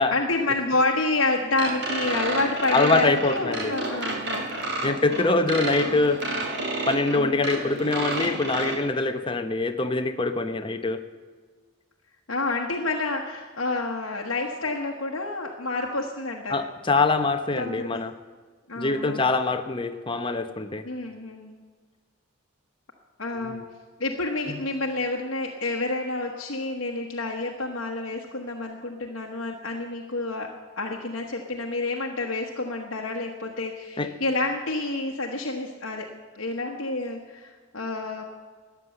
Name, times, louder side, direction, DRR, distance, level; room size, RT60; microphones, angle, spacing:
voice 1, 0.1-5.2 7.1-7.4 12.3-16.5 17.6-18.0 18.7-19.3 20.8-21.5 23.2-23.6 24.0-36.1 36.3-38.2, left 2 dB, 70° left, 0 dB, 1.2 m, -29 dB
sound 1, 1.6-8.8, right 2 dB, 55° right, 2.5 m, -30 dB
voice 2, 2.7-3.7 4.8-6.2 6.9-11.0 16.5-18.1 18.7-20.8 23.3-23.6 24.5-24.6 34.0-34.1, left 3 dB, 25° left, 8 dB, 0.9 m, -24 dB
13.5 x 9.7 x 7.8 m, 1.5 s
head